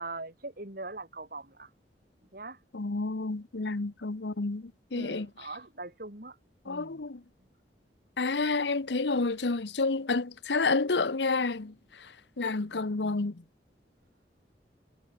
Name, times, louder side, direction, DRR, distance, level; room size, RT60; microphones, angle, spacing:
voice 1, 0.0-1.7 2.3-2.6 4.9-6.4 6.6-7.0, right 2 dB, 55° right, 6.4 m, -41 dB
voice 2, 2.7-5.3 6.7-7.2 8.2-13.4, left 3 dB, 80° left, 0.9 m, -30 dB
head